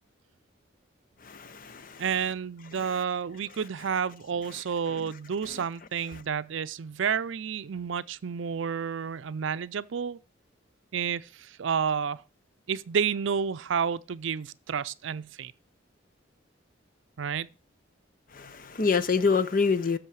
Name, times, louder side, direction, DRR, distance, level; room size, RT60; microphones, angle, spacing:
voice 1, 1.3-2.0 5.5-5.6 18.3-20.0, left 5 dB, 45° left, 0.6 m, -26 dB
voice 2, 2.0-10.2 10.9-12.2 12.7-15.5 17.2-17.5, right 7 dB, 75° right, 0.5 m, -30 dB
13.5 x 6.3 x 4.7 m
head